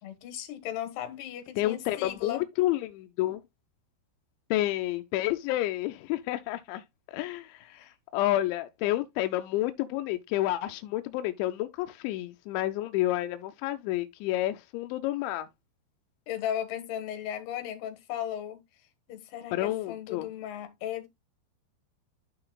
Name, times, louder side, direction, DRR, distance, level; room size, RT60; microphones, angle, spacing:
voice 1, 0.0-2.4 7.7-7.9 16.3-18.6 19.1-21.1, left 10 dB, 65° left, 3.0 m, -36 dB
voice 2, 1.6-3.4 4.5-6.8 7.1-7.8 8.1-15.5 19.5-20.3, left 15 dB, 85° left, 2.6 m, -30 dB
12.0 x 5.8 x 2.3 m
omnidirectional pair, 5.9 m